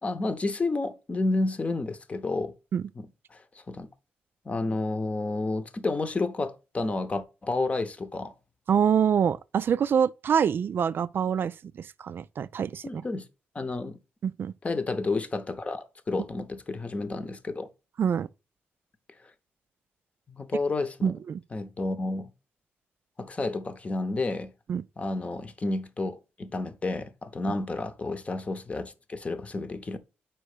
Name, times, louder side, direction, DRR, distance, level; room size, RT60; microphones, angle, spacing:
voice 1, 0.0-2.5 3.0-3.4 3.7-3.9 4.5-8.3 12.8-13.3 13.5-14.0 14.6-17.7 20.3-21.1 21.5-22.3 23.2-24.5 25.0-30.0, left 3 dB, 30° left, 0.8 m, -30 dB
voice 2, 8.7-13.0 14.2-14.5 18.0-18.3 21.0-21.4 24.7-24.8, right 7 dB, 60° right, 0.3 m, -26 dB
4.4 x 4.4 x 4.9 m
cardioid pair, 85°, 4 cm